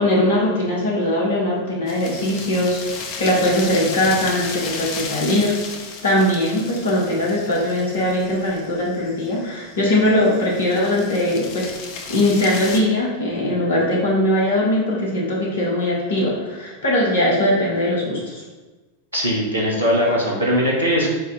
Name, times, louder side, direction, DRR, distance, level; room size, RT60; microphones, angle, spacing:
voice 1, 0.0-5.6 6.0-11.7 12.1-18.4, left 1 dB, 65° left, -4 dB, 1.3 m, -20 dB
sound 1, 1.9-12.8, left 5 dB, 45° left, 0.5 m, -34 dB
voice 2, 19.1-21.1, equal, 90° left, -4 dB, 1.0 m, -20 dB
4.2 x 2.5 x 4.4 m, 1.2 s
figure-of-eight pair, 90°, 0 cm